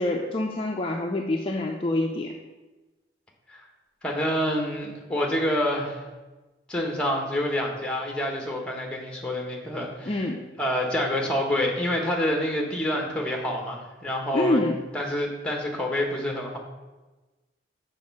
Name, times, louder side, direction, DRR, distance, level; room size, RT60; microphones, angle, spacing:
voice 1, 0.0-2.3 10.1-10.4 14.3-14.8, left 1 dB, 30° left, 1 dB, 0.5 m, -26 dB
voice 2, 4.0-6.0 6.7-10.2 10.6-14.6 14.9-16.6, left 1 dB, 5° left, 1 dB, 1.1 m, -27 dB
6.8 x 5.2 x 5.4 m, 1.2 s
head